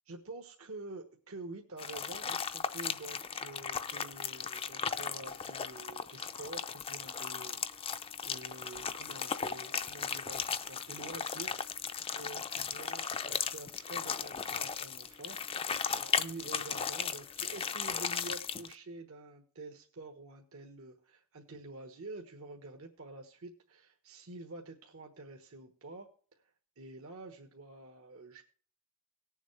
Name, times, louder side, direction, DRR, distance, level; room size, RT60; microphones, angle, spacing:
voice 1, 0.1-11.5 12.1-26.1 26.8-28.4, right 2 dB, 70° right, 3 dB, 1.2 m, -48 dB
sound 1, 1.8-18.7, left 6 dB, 25° left, 0.5 m, -36 dB
18.5 x 7.2 x 3.2 m, 0.43 s
head